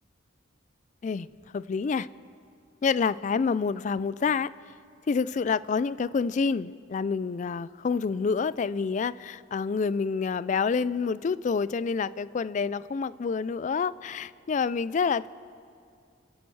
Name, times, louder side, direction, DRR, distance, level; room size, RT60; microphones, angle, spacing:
voice 1, 1.5-2.1 2.8-4.5 5.1-15.3, left 5 dB, 40° left, 18 dB, 0.3 m, -28 dB
28.5 x 10.5 x 4.7 m, 2.3 s
head